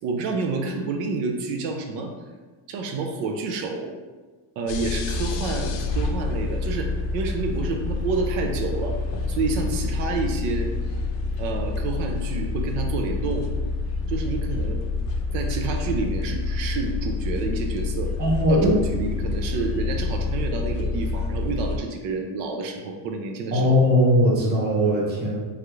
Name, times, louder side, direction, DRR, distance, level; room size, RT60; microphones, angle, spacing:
voice 1, 0.0-2.1 2.7-3.9 4.6-9.0 9.3-10.7 11.4-13.4 14.1-14.8 15.3-18.1 18.5-23.8, right 3 dB, 75° right, 3 dB, 0.6 m, -29 dB
sound 1, 4.7-21.8, left 3 dB, 65° left, 0.5 m, -27 dB
voice 2, 18.2-18.7 23.5-25.4, equal, 25° right, -3 dB, 0.5 m, -19 dB
3.3 x 2.4 x 3.0 m, 1.3 s
cardioid pair, 150°, 46 cm